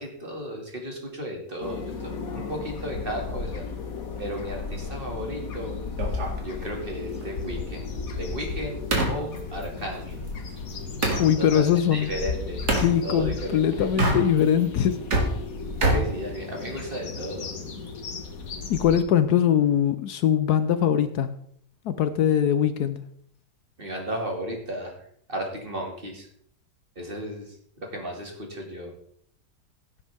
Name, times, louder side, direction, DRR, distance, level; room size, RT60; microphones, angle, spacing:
voice 1, 0.0-3.6 4.2-5.8 6.4-7.9 8.1-8.8 9.1-10.2 11.4-12.6 13.0-13.9 15.8-17.5 23.8-25.0 25.3-26.3 27.0-28.9, equal, 30° right, 1 dB, 2.4 m, -34 dB
sound 1, 1.6-19.0, left 4 dB, 55° left, 1.7 m, -35 dB
Table Slam, 6.0-11.3 12.7-12.9 13.8-14.6 14.9-16.9, right 2 dB, 65° right, 2.7 m, -28 dB
voice 2, 11.2-12.1 12.7-15.0 18.7-21.3 21.8-23.0, left 9 dB, 70° left, 11 dB, 1.2 m, -22 dB
16.0 x 8.6 x 3.5 m, 0.66 s
omnidirectional pair, 1.8 m